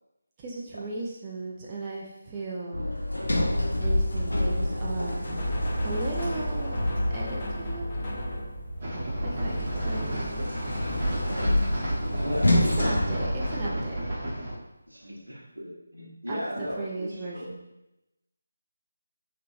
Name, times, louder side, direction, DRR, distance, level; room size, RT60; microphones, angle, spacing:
voice 1, 0.4-2.9 3.7-5.4 5.8-6.8 7.1-8.0 9.2-10.6 12.8-14.0 16.3-17.6, right 2 dB, 20° right, -4 dB, 0.4 m, -36 dB
Sliding door, 2.7-7.6 9.2-14.1, left 1 dB, 70° left, 0.7 m, -28 dB
sound 1, 4.8-11.5, equal, 30° left, 0.6 m, -33 dB
sound 2, 8.8-14.5, right 1 dB, 35° right, 0.9 m, -33 dB
voice 2, 12.2-12.6 13.1-13.3 14.9-17.6, equal, 85° right, -2 dB, 0.8 m, -36 dB
3.2 x 2.9 x 2.5 m, 0.92 s
figure-of-eight pair, 155°, 0 cm